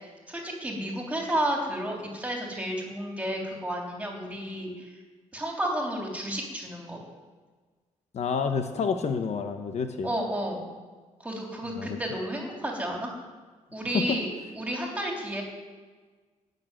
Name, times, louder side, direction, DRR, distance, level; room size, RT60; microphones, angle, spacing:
voice 1, 0.3-4.9 5.3-7.0 10.0-10.6 11.2-13.1 13.7-14.3 14.5-15.4, right 1 dB, 10° right, -1 dB, 3.3 m, -31 dB
voice 2, 8.1-10.1 11.7-12.0 13.9-14.2, left 5 dB, 55° left, 6 dB, 1.0 m, -28 dB
18.5 x 6.8 x 9.1 m, 1.4 s
wide cardioid pair, 165°, 13 cm